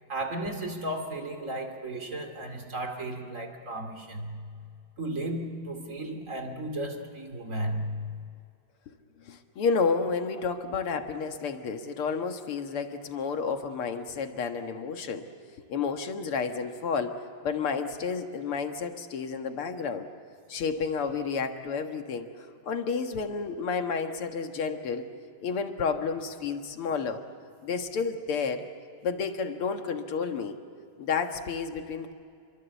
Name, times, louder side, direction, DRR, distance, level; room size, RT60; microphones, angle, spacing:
voice 1, 0.1-4.5 5.0-8.1, right 1 dB, 35° right, 5 dB, 2.8 m, -34 dB
voice 2, 9.2-15.3 15.6-20.1 20.5-25.1 25.4-27.2 27.6-28.7 29.0-30.6 31.0-32.1, left 5 dB, 80° left, 6 dB, 2.5 m, -31 dB
29.0 x 23.5 x 8.3 m, 2.4 s
omnidirectional pair, 2.4 m